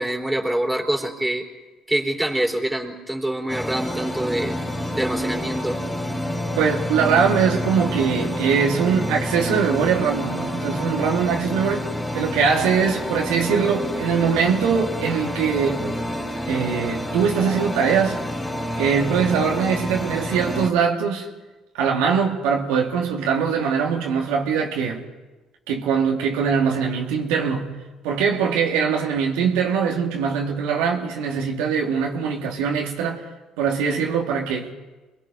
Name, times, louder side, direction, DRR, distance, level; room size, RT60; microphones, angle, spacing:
voice 1, 0.0-1.5 1.9-4.6 5.0-5.8, right 1 dB, 10° right, 4.3 m, -25 dB
sound 1, 3.5-20.7, left 1 dB, 15° left, 4.3 m, -28 dB
voice 2, 6.6-15.9 16.5-18.2 18.8-21.3 21.7-25.0 25.7-27.8 28.0-33.2 33.6-34.7, right 6 dB, 85° right, 2.5 m, -22 dB
28.5 x 21.0 x 5.4 m
supercardioid pair, 65°, 0 cm